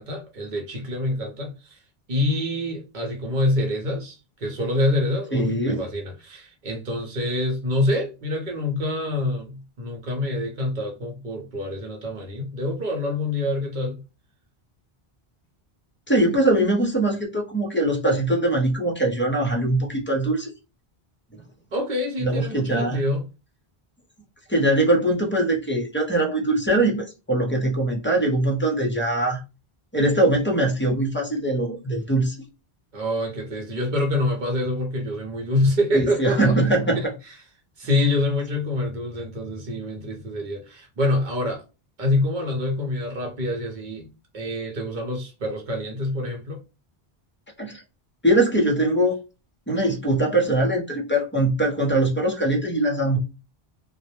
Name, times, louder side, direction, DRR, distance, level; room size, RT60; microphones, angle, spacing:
voice 1, 0.0-1.8 2.1-14.0 21.7-23.3 32.9-36.6 37.3-37.4 37.8-41.6 42.0-46.6, left 1 dB, 55° right, 0.8 m, -26 dB
voice 2, 5.3-5.8 16.1-20.5 22.2-23.0 24.5-29.4 29.9-32.4 35.9-37.1 47.6-47.8 48.2-49.2 49.7-53.2, right 1 dB, 15° left, 0.5 m, -22 dB
2.1 x 2.1 x 2.8 m
omnidirectional pair, 1.0 m